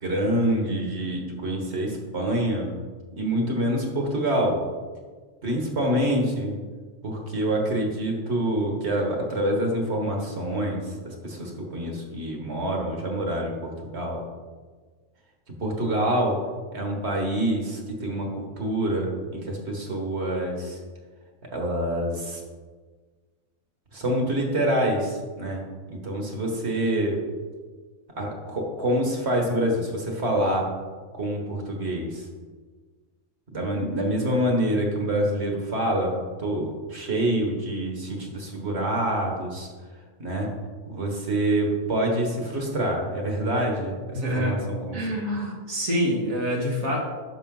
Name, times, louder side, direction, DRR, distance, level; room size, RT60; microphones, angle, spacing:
voice 1, 0.0-2.7 3.2-4.6 5.4-6.6 7.0-14.2 15.5-16.4 16.7-20.8 21.5-22.4 23.9-27.2 28.2-30.7 31.1-32.3 33.5-39.7 40.2-40.5 40.9-45.1, right 1 dB, 55° right, 1 dB, 1.9 m, -26 dB
voice 2, 44.1-44.6 44.9-47.0, equal, 90° right, -2 dB, 2.3 m, -26 dB
10.5 x 6.6 x 3.8 m, 1.4 s
omnidirectional pair, 1.4 m